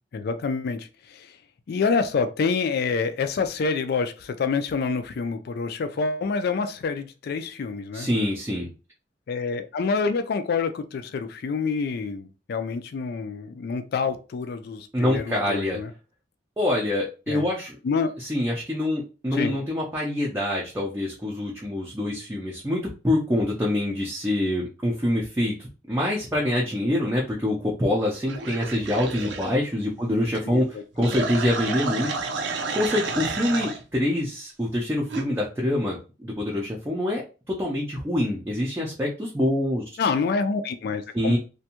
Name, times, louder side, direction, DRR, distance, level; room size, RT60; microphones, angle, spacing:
voice 1, 0.1-1.4 1.7-8.1 9.3-15.9 17.3-17.5 17.8-18.1 19.3-19.6 30.4-31.2 40.0-41.4, left 5 dB, 60° left, 0.3 m, -27 dB
voice 2, 7.9-8.7 14.9-15.8 16.6-17.8 18.2-39.8 41.1-41.4, left 1 dB, 15° right, 0.5 m, -26 dB
sound 1, 28.3-29.5 31.0-33.8 35.1-35.2, right 4 dB, 75° right, 0.5 m, -30 dB
2.6 x 2.2 x 2.8 m
head